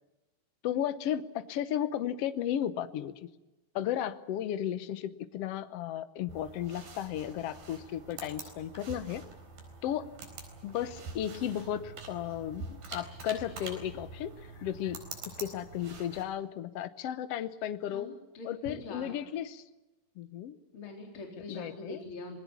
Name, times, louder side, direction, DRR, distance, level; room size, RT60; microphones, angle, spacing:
voice 1, 0.6-3.3 3.7-9.2 9.8-10.1 10.6-14.3 14.6-15.0 15.4-18.1 18.4-19.6 20.2-20.6 21.5-22.0, left 10 dB, 85° left, 12 dB, 1.3 m, -34 dB
sound 1, 6.3-16.2, right 4 dB, 70° right, 5.9 m, -46 dB
voice 2, 17.8-19.1 20.7-22.4, left 3 dB, 35° left, 1 dB, 4.4 m, -43 dB
26.5 x 20.5 x 7.3 m, 1.1 s
omnidirectional pair, 4.3 m